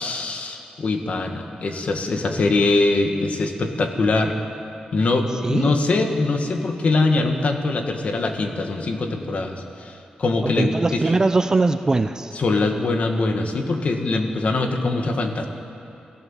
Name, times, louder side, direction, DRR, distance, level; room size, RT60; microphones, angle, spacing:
voice 1, 0.0-4.3 4.9-11.0 12.4-15.5, left 3 dB, 50° left, 4 dB, 2.0 m, -22 dB
voice 2, 5.4-5.8 10.4-12.3, right 3 dB, 25° right, 9 dB, 0.6 m, -21 dB
28.5 x 16.0 x 7.4 m, 2.8 s
wide cardioid pair, 165°, 3 cm